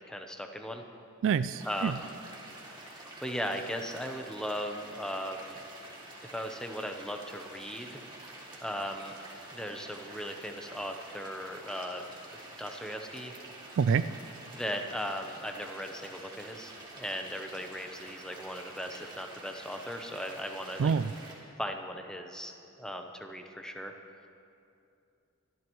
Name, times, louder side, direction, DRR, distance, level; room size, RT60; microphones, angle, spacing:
voice 1, 0.1-0.8 1.6-2.1 2.9-5.6 6.3-8.0 8.6-9.1 9.5-12.0 12.3-13.3 14.5-20.9 21.6-23.9, equal, 5° left, 4 dB, 0.8 m, -38 dB
voice 2, 1.2-1.9 13.8-14.1 20.8-21.1, right 6 dB, 55° right, 14 dB, 0.3 m, -26 dB
Wooden Fountain, 1.5-21.3, right 2 dB, 20° right, 2.2 m, -48 dB
25.0 x 12.0 x 3.1 m, 2.6 s
head